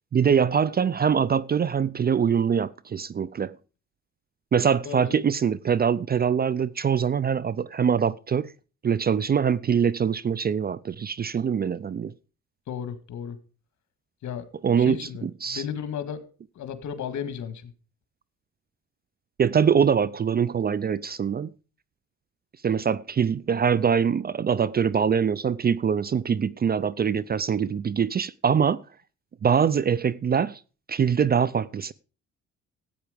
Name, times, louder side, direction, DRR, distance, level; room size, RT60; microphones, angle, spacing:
voice 1, 0.1-3.5 4.5-8.5 8.8-12.1 14.6-15.6 19.4-21.5 22.6-28.8 29.4-30.6 30.9-31.9, right 7 dB, 30° right, 0.5 m, -23 dB
voice 2, 4.8-5.2 12.7-13.4 14.2-14.5 14.8-16.2 16.6-17.7, left 8 dB, 70° left, 1.9 m, -34 dB
13.5 x 8.7 x 5.1 m
cardioid pair, 90°, 30 cm